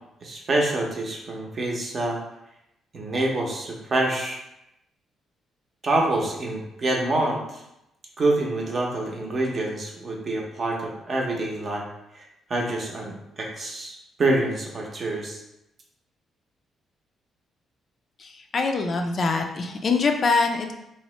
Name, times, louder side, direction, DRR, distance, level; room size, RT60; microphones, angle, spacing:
voice 1, 0.2-2.2 2.9-4.4 5.8-7.6 8.2-11.8 12.1-15.4, right 2 dB, 40° right, 0 dB, 0.6 m, -26 dB
voice 2, 18.2-20.7, left 4 dB, 45° left, 4 dB, 0.3 m, -24 dB
2.9 x 2.0 x 3.0 m, 0.85 s
cardioid pair, 90°, 0 cm